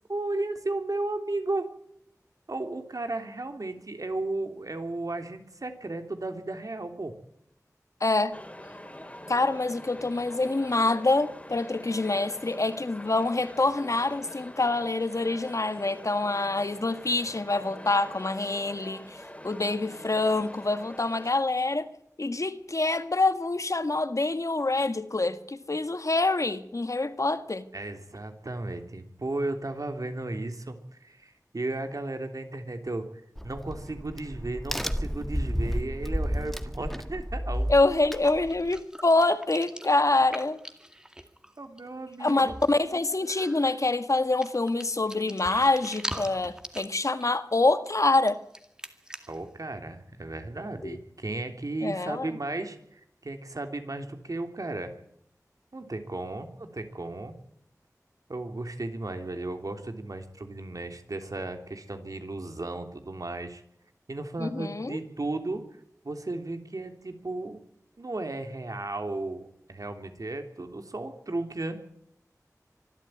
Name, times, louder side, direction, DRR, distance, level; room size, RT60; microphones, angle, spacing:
voice 1, 0.1-1.7 2.5-7.1 27.7-30.7 31.0-33.1 33.4-37.7 41.6-42.6 49.3-54.9 55.7-57.3 58.3-63.6 64.1-65.6 66.0-67.6 68.0-71.8, right 2 dB, 70° right, 6 dB, 3.2 m, -34 dB
voice 2, 8.0-8.4 9.3-21.9 22.2-27.7 37.7-40.6 42.2-48.4 50.8-51.0 51.8-52.3 64.4-65.0, left 2 dB, 60° left, 11 dB, 1.7 m, -26 dB
sound 1, 8.3-21.3, left 1 dB, 20° left, 3.3 m, -44 dB
Crack, 33.4-38.8, equal, 5° left, 1.7 m, -32 dB
sound 2, 37.5-37.6 38.0-41.8 42.1-42.2 42.4-42.8 43.2-43.8 44.4-49.4, equal, 10° right, 2.2 m, -42 dB
25.0 x 13.0 x 9.3 m, 0.73 s
wide cardioid pair, 60°, 6 cm